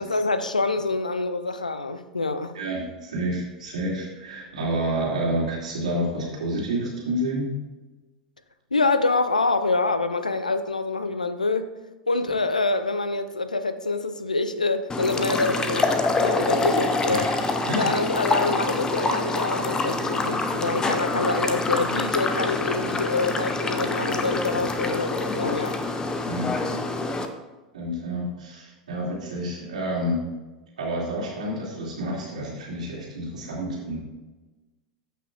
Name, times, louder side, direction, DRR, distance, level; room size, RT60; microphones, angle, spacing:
voice 1, 0.0-2.6 8.7-11.7 12.1-17.3 17.8-25.8, left 3 dB, 85° left, 11 dB, 0.5 m, -26 dB
voice 2, 2.5-7.5 15.3-15.4 17.1-17.3 17.6-18.0 22.8-22.9 26.3-26.8 27.7-30.2 30.8-34.0, right 1 dB, 70° right, -4 dB, 2.9 m, -29 dB
sound 1, 14.9-27.3, left 3 dB, 20° left, 0.8 m, -26 dB
14.0 x 5.7 x 2.6 m, 1.2 s
figure-of-eight pair, 85°, 4 cm